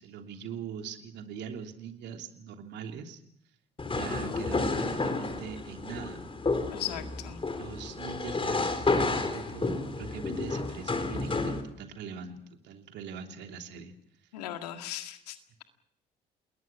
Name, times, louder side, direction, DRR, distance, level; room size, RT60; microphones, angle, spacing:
voice 1, 0.0-3.2 3.9-6.3 7.6-13.9, right 7 dB, 60° right, 5 dB, 3.1 m, -42 dB
sound 1, 3.8-11.6, left 3 dB, 25° left, 4.4 m, -31 dB
voice 2, 6.7-7.4 14.3-15.6, left 12 dB, 75° left, 7 dB, 2.0 m, -38 dB
28.5 x 21.0 x 6.0 m, 0.72 s
figure-of-eight pair, 50°, 21 cm